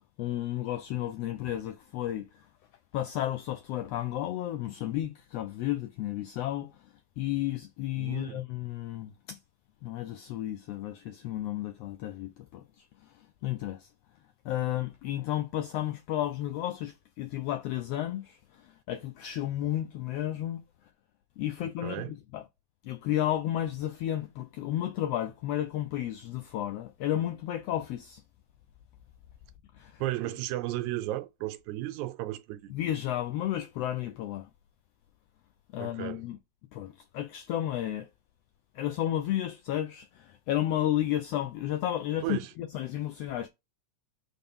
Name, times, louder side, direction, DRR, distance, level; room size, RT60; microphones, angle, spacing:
voice 1, 0.2-2.5 2.9-9.4 9.8-13.9 14.4-20.6 21.4-22.4 22.8-28.2 29.8-30.0 32.7-34.5 35.7-36.4 36.7-38.1 38.7-43.5, left 12 dB, 85° left, 1.4 m, -32 dB
voice 2, 8.0-8.4 21.8-22.1 30.0-32.7 35.8-36.2 42.2-42.5, right 16 dB, 85° right, 2.0 m, -34 dB
4.6 x 3.9 x 5.4 m
omnidirectional pair, 3.3 m